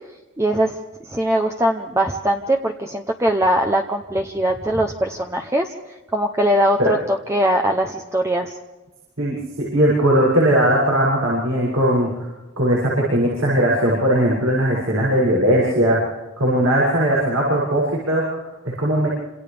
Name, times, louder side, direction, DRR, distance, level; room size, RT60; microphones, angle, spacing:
voice 1, 0.4-0.8 1.1-5.7 6.1-8.5, right 1 dB, 15° right, 3 dB, 0.8 m, -21 dB
voice 2, 9.2-12.3 12.6-16.0 16.4-19.1, right 1 dB, 80° right, -5 dB, 7.3 m, -19 dB
28.0 x 27.0 x 3.5 m, 1.1 s
head